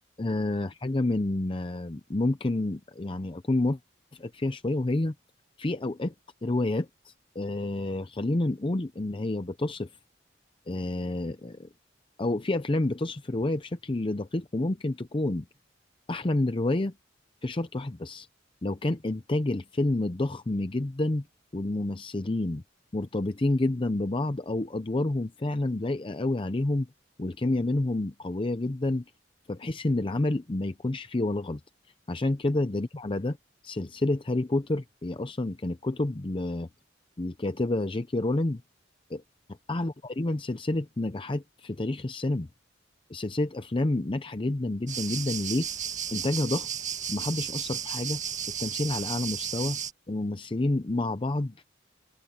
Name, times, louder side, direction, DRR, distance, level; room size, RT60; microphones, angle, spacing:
voice 1, 0.2-3.8 4.1-5.1 5.6-6.1 6.4-9.9 10.7-11.7 12.2-15.5 16.1-16.9 17.4-18.3 18.6-21.2 21.5-22.6 22.9-26.9 27.2-29.0 29.5-31.6 32.1-33.4 33.6-36.7 37.2-38.6 39.1-39.2 39.7-42.5 43.1-45.7 46.1-46.7 47.1-48.2 48.6-49.8 50.1-51.6, left 2 dB, 30° left, 0.6 m, -29 dB
sound 1, 44.9-49.9, right 9 dB, 40° right, 1.9 m, -34 dB
head